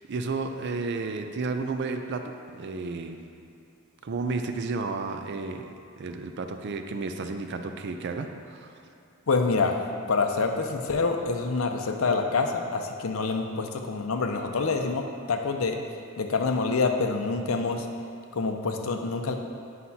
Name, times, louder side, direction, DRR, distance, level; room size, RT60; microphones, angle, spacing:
voice 1, 0.1-3.2 4.0-8.7, right 3 dB, 55° right, 6 dB, 0.5 m, -32 dB
voice 2, 9.3-9.8 10.1-15.8 16.2-17.9 18.3-19.3, left 4 dB, 80° left, 4 dB, 0.6 m, -26 dB
9.3 x 5.7 x 2.8 m, 2.6 s
head